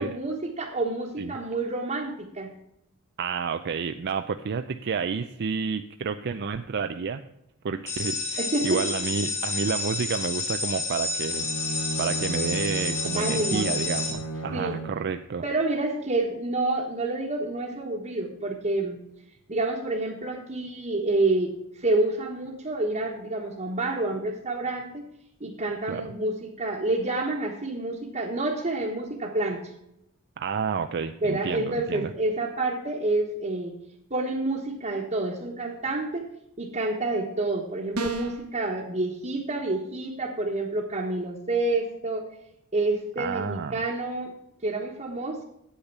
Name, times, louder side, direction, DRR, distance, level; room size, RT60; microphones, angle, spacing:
voice 1, 0.0-2.5 8.4-8.8 13.1-13.7 14.5-14.8 15.4-19.0 19.5-21.5 21.8-25.0 25.4-29.6 31.2-33.7 34.1-36.2 36.6-42.3 42.7-44.3 44.6-45.4, right 2 dB, 35° right, -3 dB, 1.3 m, -28 dB
voice 2, 3.2-7.2 7.6-11.5 12.0-15.4 25.9-26.0 30.4-32.1 43.2-43.8, right 5 dB, 50° right, 8 dB, 0.4 m, -30 dB
sound 1, 7.9-14.1, left 4 dB, 30° left, 2.1 m, -30 dB
Bowed string instrument, 11.2-15.1, right 2 dB, 75° left, 1.0 m, -34 dB
sound 2, 37.9-38.5, right 1 dB, 70° right, 1.3 m, -31 dB
8.7 x 8.3 x 6.0 m, 0.80 s
head